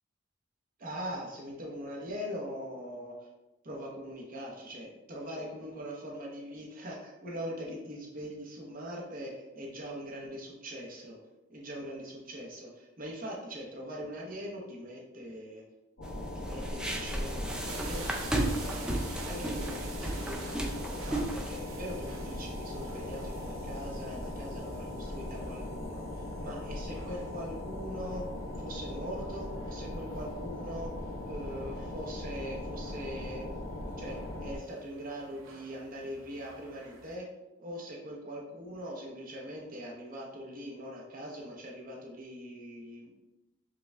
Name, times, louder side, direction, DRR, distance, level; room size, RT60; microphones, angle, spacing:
voice 1, 0.8-3.2 3.6-11.2 11.5-15.6 16.3-28.2 28.6-30.9 31.2-33.5 33.8-37.3 37.6-43.1, equal, 45° right, -2 dB, 0.9 m, -42 dB
sound 1, 16.0-34.6, left 1 dB, 75° left, 1.0 m, -39 dB
sound 2, 16.0-21.6, right 1 dB, 5° right, 0.3 m, -34 dB
sound 3, 17.6-37.2, right 4 dB, 85° right, 0.6 m, -51 dB
4.9 x 2.3 x 3.3 m, 0.99 s
head